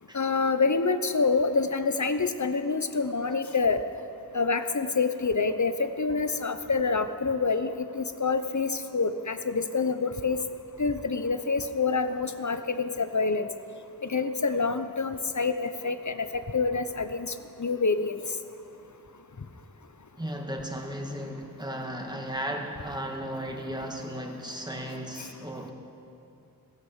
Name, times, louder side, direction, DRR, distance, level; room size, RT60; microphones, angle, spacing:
voice 1, 0.1-3.8 4.3-10.4 10.8-13.5 14.0-16.3 16.5-17.3 17.6-18.2, left 4 dB, 50° left, 10 dB, 0.8 m, -27 dB
voice 2, 20.2-25.7, equal, 10° right, 1 dB, 2.0 m, -35 dB
15.5 x 15.0 x 5.7 m, 2.6 s
wide cardioid pair, 40°, 36 cm